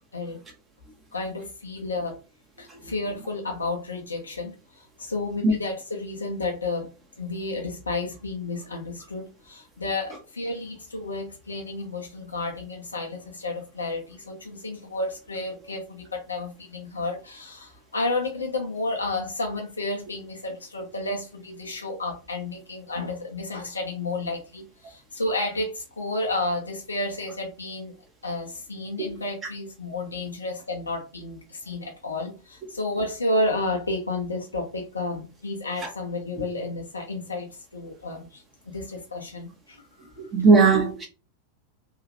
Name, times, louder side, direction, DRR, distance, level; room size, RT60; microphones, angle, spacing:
voice 1, 1.1-2.2 2.6-6.9 7.2-27.9 28.2-40.1, left 2 dB, 75° left, 0.6 m, -31 dB
voice 2, 40.2-41.1, right 4 dB, 20° right, 1.0 m, -19 dB
2.9 x 2.4 x 2.6 m
figure-of-eight pair, 90°, 0 cm